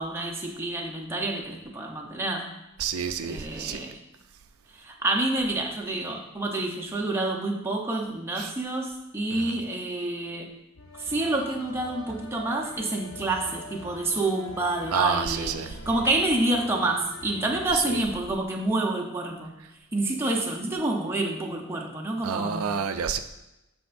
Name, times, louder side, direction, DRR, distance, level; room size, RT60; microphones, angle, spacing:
voice 1, 0.0-2.5 3.3-4.0 4.7-10.5 11.0-19.6 19.9-22.8, right 2 dB, 10° right, 0 dB, 0.7 m, -28 dB
voice 2, 2.8-3.8 8.4-8.5 9.3-9.6 14.9-15.7 17.7-18.0 22.2-23.2, right 6 dB, 80° right, 8 dB, 0.4 m, -29 dB
sound 1, 10.8-17.7, left 1 dB, 70° left, 0.9 m, -44 dB
12.5 x 4.3 x 2.6 m, 0.91 s
head